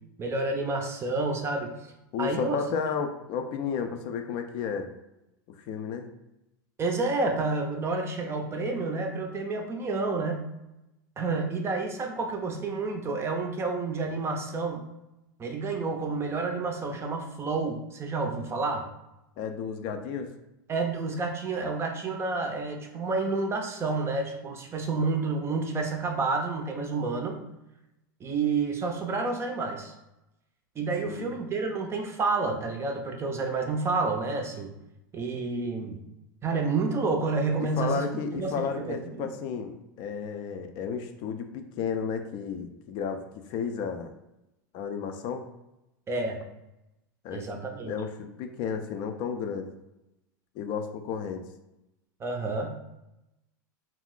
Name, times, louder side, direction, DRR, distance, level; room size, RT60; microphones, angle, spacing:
voice 1, 0.2-1.7 2.2-2.6 6.8-10.5 11.2-14.9 15.4-18.8 20.7-27.4 28.2-29.9 30.8-34.7 35.1-36.0 36.4-38.0 38.3-39.3 46.1-46.4 47.3-47.9 52.2-52.8, right 3 dB, 25° right, 4 dB, 0.5 m, -29 dB
voice 2, 2.1-4.9 5.5-6.1 19.4-20.3 31.1-31.3 37.6-43.2 43.5-44.1 44.7-45.5 47.2-49.7 50.6-51.4, left 6 dB, 50° left, 6 dB, 0.4 m, -32 dB
2.4 x 2.0 x 3.7 m, 0.92 s
hypercardioid pair, 110°, 11 cm